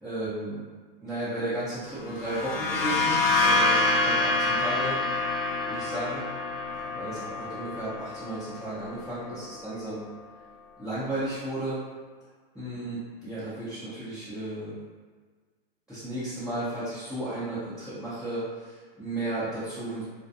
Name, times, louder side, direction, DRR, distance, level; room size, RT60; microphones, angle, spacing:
voice 1, 0.0-0.6 1.0-5.0 5.7-6.2 6.7-10.0 10.8-11.8 12.6-14.8 15.9-20.0, right 1 dB, 5° right, -16 dB, 0.4 m, -34 dB
sound 1, 2.1-9.7, left 2 dB, 80° left, 0.5 m, -27 dB
2.5 x 2.1 x 2.5 m, 1.5 s
hypercardioid pair, 135°, 30 cm